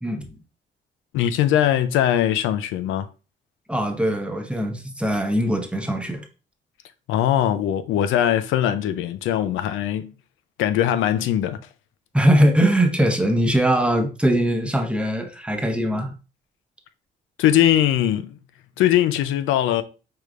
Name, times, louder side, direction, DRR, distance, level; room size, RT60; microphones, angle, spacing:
voice 1, 1.1-3.1 7.1-10.1 10.6-11.6 17.4-18.4 18.8-19.8, left 11 dB, 90° left, 0.5 m, -21 dB
voice 2, 3.7-6.2 12.1-16.1, right 1 dB, 5° right, 0.8 m, -21 dB
4.7 x 3.2 x 2.4 m
cardioid pair, 90°, 20 cm